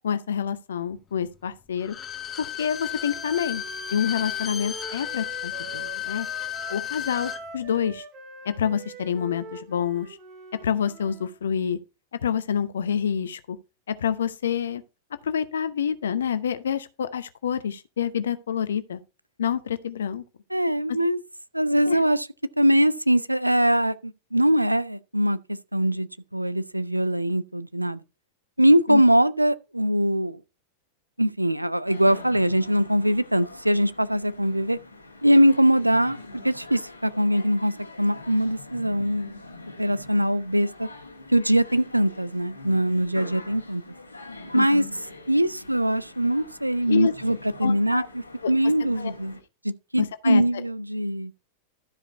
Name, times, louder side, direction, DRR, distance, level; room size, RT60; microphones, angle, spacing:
voice 1, 0.0-2.0 2.4-3.6 3.9-6.3 6.7-8.0 8.4-10.2 10.6-11.8 12.1-13.6 13.9-14.8 15.2-19.0 19.4-20.2 21.9-22.0 28.9-29.0 44.5-44.9 46.9-47.1 47.6-48.1 48.4-48.5 49.0-49.1 50.0-50.4, left 8 dB, 65° left, 0.8 m, -27 dB
Bowed string instrument, 1.8-7.4 7.7-7.8, left 10 dB, 25° left, 0.9 m, -33 dB
Wind instrument woodwind instrument, 2.9-11.3, right 4 dB, 35° right, 3.1 m, -44 dB
voice 2, 20.5-21.2 21.5-22.3 22.6-25.4 25.7-28.0 28.6-30.4 31.2-34.8 35.2-36.2 36.4-37.7 38.0-39.4 39.8-40.9 41.3-43.8 44.5-44.8 45.3-49.4 49.6-51.3, equal, 85° right, 0.5 m, -22 dB
sound 1, 31.9-49.4, left 2 dB, 80° left, 1.9 m, -44 dB
12.5 x 5.0 x 4.5 m
figure-of-eight pair, 90°, 0 cm